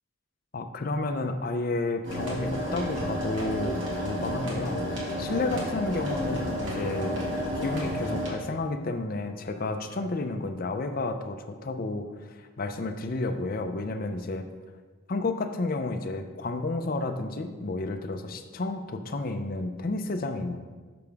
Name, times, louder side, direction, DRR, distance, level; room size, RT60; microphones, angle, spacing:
voice 1, 0.5-7.2 7.6-14.5 15.1-20.6, left 2 dB, 45° left, 7 dB, 0.5 m, -31 dB
sound 1, 2.0-8.3, equal, 60° right, 2.1 m, -31 dB
6.8 x 6.8 x 3.5 m, 1.4 s
head